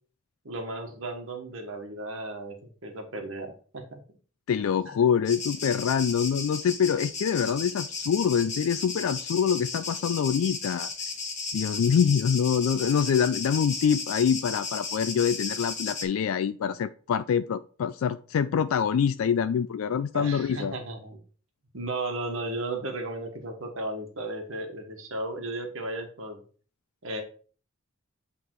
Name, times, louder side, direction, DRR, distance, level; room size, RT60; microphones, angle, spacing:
voice 1, 0.4-4.0 20.1-21.2 21.7-26.4 27.0-27.2, right 2 dB, 75° right, 3 dB, 1.3 m, -35 dB
voice 2, 4.5-10.9 11.5-20.7, left 7 dB, 85° left, 11 dB, 0.3 m, -25 dB
sound 1, 5.3-16.0, left 4 dB, 35° left, 1.6 m, -35 dB
8.5 x 3.5 x 4.5 m, 0.41 s
head